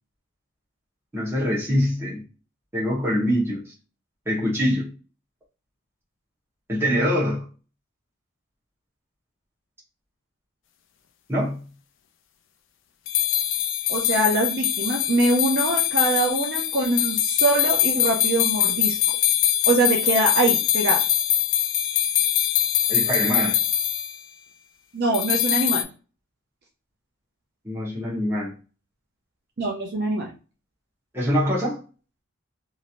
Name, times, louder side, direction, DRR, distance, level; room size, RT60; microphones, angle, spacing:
voice 1, 1.1-2.2 2.7-3.7 4.3-4.9 6.7-7.4 11.3-11.6 22.9-23.6 27.6-28.5 31.1-31.8, equal, 10° right, 1.1 m, -24 dB
sound 1, 13.1-24.2 25.1-25.8, left 11 dB, 55° left, 0.4 m, -23 dB
voice 2, 13.9-19.0 19.7-21.0 24.9-25.9 29.6-30.3, right 2 dB, 45° right, 0.5 m, -23 dB
3.0 x 2.8 x 2.5 m
head